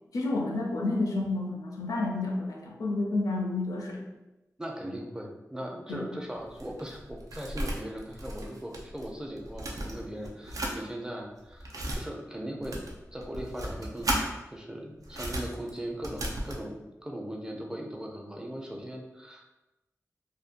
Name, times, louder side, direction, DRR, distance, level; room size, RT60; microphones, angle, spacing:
voice 1, 0.1-4.0 5.9-6.2, left 2 dB, 85° left, 0 dB, 0.4 m, -30 dB
voice 2, 4.6-12.8 13.1-19.5, right 1 dB, 10° right, 0 dB, 0.4 m, -39 dB
sound 1, 6.3-9.1 9.4-10.8 11.4-12.0 12.6-14.2 15.0-16.6, right 1 dB, 75° right, 0.4 m, -35 dB
2.5 x 2.2 x 2.4 m, 1.0 s
wide cardioid pair, 70°, 6 cm